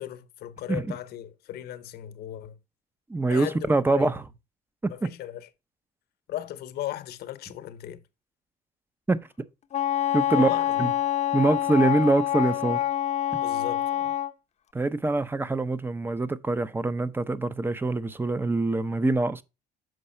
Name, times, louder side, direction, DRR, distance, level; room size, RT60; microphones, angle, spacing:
voice 1, 0.0-2.6 3.3-4.1 4.9-5.5 6.3-8.0 10.3-10.9 13.3-14.1, left 12 dB, 70° left, 0.8 m, -37 dB
voice 2, 3.1-4.2 4.8-5.1 9.1-9.2 10.1-10.5 10.8-10.9 11.3-12.8 14.7-19.4, right 2 dB, 15° right, 0.5 m, -24 dB
Wind instrument woodwind instrument, 9.7-14.3, left 12 dB, 40° left, 0.6 m, -26 dB
6.6 x 4.7 x 4.2 m
cardioid pair, 110°, 17 cm